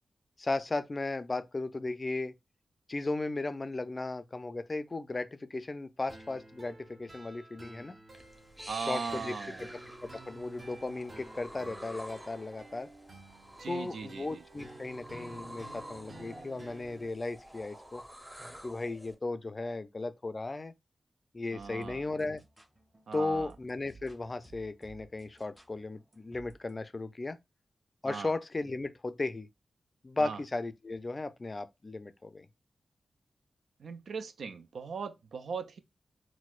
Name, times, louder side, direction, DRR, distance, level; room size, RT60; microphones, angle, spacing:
voice 1, 0.4-2.3 2.9-8.0 8.9-9.3 9.7-12.9 13.7-18.0 18.6-20.7 21.3-22.4 23.1-27.4 28.0-29.5 30.0-32.5, left 2 dB, 40° left, 0.4 m, -36 dB
sound 1, 6.1-17.1, right 2 dB, 55° right, 1.0 m, -52 dB
sound 2, 8.1-19.2, equal, 10° right, 0.7 m, -49 dB
voice 2, 8.7-9.7 13.6-14.4 21.5-22.0 23.1-23.5 28.0-28.3 30.2-30.4 33.8-35.8, right 5 dB, 80° right, 0.3 m, -39 dB
sound 3, 21.6-26.8, right 3 dB, 30° right, 1.2 m, -58 dB
4.2 x 2.0 x 2.4 m
cardioid pair, 45°, 0 cm